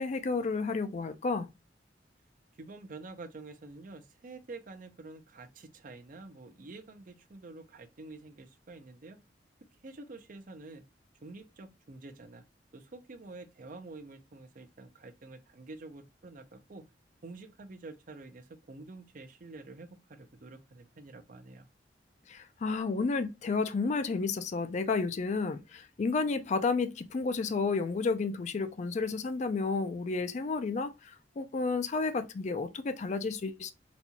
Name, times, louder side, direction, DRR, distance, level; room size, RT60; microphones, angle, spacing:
voice 1, 0.0-1.5 22.3-33.7, left 4 dB, 40° left, 0.4 m, -31 dB
voice 2, 2.6-9.2 9.8-10.9 11.2-12.4 12.7-16.9 17.2-21.7, right 3 dB, 50° right, 0.5 m, -48 dB
4.0 x 2.3 x 2.8 m
head